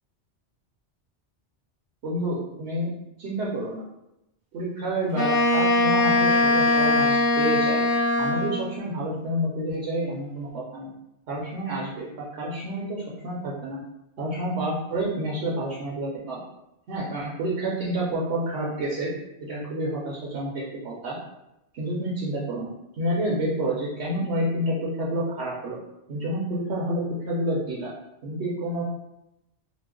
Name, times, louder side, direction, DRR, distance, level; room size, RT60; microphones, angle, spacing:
voice 1, 2.0-2.9 3.2-3.8 4.5-7.8 8.2-10.9 11.3-13.8 14.2-16.4 16.9-19.1 19.4-21.2 21.7-22.7 23.0-25.8 26.1-27.9 28.2-28.8, right 1 dB, 70° right, -5 dB, 0.9 m, -29 dB
Wind instrument woodwind instrument, 5.1-8.7, left 2 dB, 55° left, 0.7 m, -21 dB
2.9 x 2.0 x 3.6 m, 0.89 s
omnidirectional pair, 1.2 m